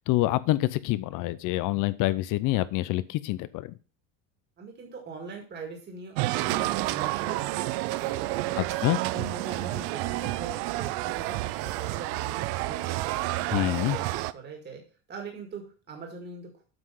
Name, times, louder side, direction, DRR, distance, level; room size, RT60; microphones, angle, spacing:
voice 1, 0.1-3.7 8.8-9.0 13.5-14.0, left 17 dB, 50° left, 17 dB, 0.6 m, -26 dB
voice 2, 4.6-8.6 9.0-14.8 15.1-16.6, right 4 dB, 25° right, 2 dB, 2.0 m, -42 dB
sound 1, 6.1-14.3, right 18 dB, 65° right, 0.5 m, -30 dB
8.1 x 5.7 x 5.5 m, 0.36 s
cardioid pair, 160°, 42 cm